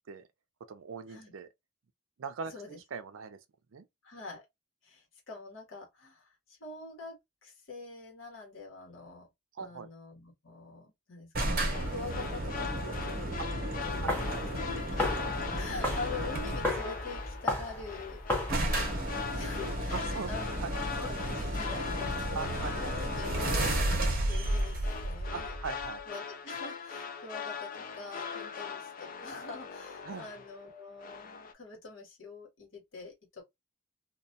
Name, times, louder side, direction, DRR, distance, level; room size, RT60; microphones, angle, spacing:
voice 1, 0.7-1.5 2.2-2.5 2.9-3.4 3.7-3.9 9.5-9.9 14.0-14.4 19.9-20.3 20.6-20.8 22.3-22.9 25.3-26.0 30.1-30.3, right 5 dB, 85° right, 0.4 m, -40 dB
voice 2, 4.0-4.5 4.8-9.3 9.6-18.2 19.4-20.6 20.9-25.5 26.1-33.4, left 3 dB, 70° left, 1.1 m, -45 dB
sound 1, 11.3-16.9 17.9-18.0 18.1-18.2 18.5-26.0, right 1 dB, 45° right, 0.8 m, -33 dB
sound 2, 11.6-30.7 31.0-31.5, left 6 dB, 45° left, 0.3 m, -41 dB
sound 3, 13.8-21.6, left 1 dB, 10° left, 0.8 m, -37 dB
2.3 x 2.2 x 2.6 m
head